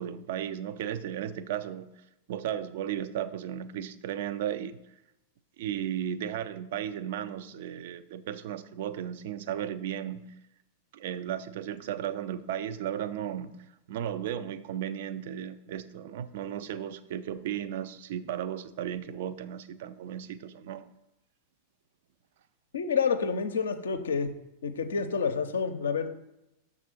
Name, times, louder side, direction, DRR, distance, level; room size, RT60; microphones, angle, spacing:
voice 1, 0.0-1.9 2.3-4.8 5.6-10.3 10.9-20.9, right 10 dB, 55° right, 0.4 m, -35 dB
voice 2, 22.7-24.3 24.6-26.1, left 5 dB, 65° left, 0.6 m, -28 dB
6.6 x 3.7 x 6.3 m
figure-of-eight pair, 90°, 0 cm